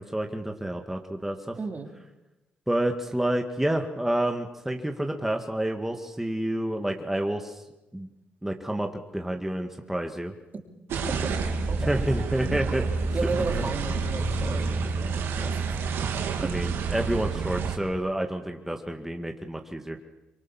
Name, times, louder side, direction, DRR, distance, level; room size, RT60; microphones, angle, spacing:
voice 1, 0.0-1.6 2.7-7.6 7.9-8.1 8.4-10.3 11.8-12.8 13.5-13.6 16.4-20.0, right 1 dB, 5° right, 3 dB, 2.2 m, -29 dB
voice 2, 1.6-1.9 11.7-12.0 13.1-15.6 16.4-16.5, right 4 dB, 45° right, 4 dB, 3.7 m, -33 dB
sound 1, 10.9-17.8, right 4 dB, 75° right, 3.1 m, -28 dB
25.0 x 23.0 x 7.4 m, 1.0 s
supercardioid pair, 60°, 4 cm